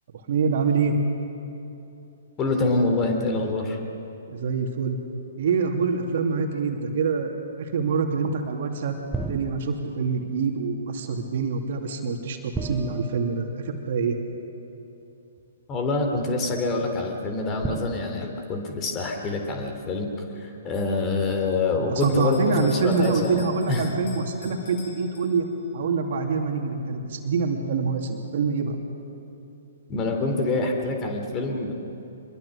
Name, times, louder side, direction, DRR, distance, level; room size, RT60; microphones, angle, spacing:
voice 1, 0.3-1.0 4.3-5.0 5.4-9.0 9.3-13.5 13.9-14.2 21.9-25.5 25.7-28.8, right 5 dB, 50° right, 3 dB, 2.7 m, -25 dB
voice 2, 2.4-3.8 15.7-20.1 20.3-23.9 29.9-31.7, left 3 dB, 20° left, 3 dB, 3.3 m, -26 dB
sound 1, 9.1-10.1 12.5-14.2 15.4-15.5 17.6-19.3, right 4 dB, 10° right, 0.8 m, -36 dB
Bell, 22.0-25.7, left 4 dB, 45° left, 2.3 m, -47 dB
25.0 x 22.0 x 6.6 m, 2.9 s
figure-of-eight pair, 120°, 0 cm